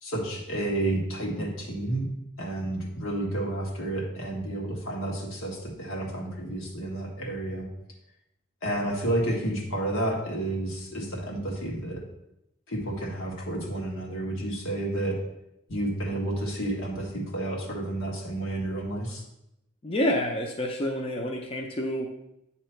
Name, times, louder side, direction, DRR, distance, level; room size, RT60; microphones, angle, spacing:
voice 1, 0.0-2.0 2.4-7.7 8.6-12.0 12.7-15.2 15.7-19.2, right 1 dB, 80° left, -1 dB, 1.4 m, -30 dB
voice 2, 19.8-22.1, equal, 25° left, 1 dB, 0.5 m, -28 dB
8.7 x 2.9 x 4.4 m, 0.84 s
head